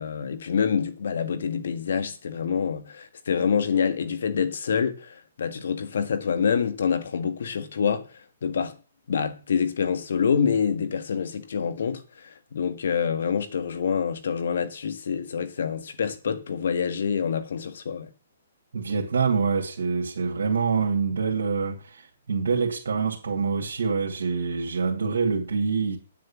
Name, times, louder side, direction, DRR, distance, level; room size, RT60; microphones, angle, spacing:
voice 1, 0.0-8.1 8.4-8.7 9.1-18.1, left 6 dB, 70° left, 1.7 m, -26 dB
voice 2, 18.7-26.0, right 5 dB, 75° right, 2.5 m, -26 dB
9.2 x 7.6 x 7.3 m
hypercardioid pair, 140°, 0 cm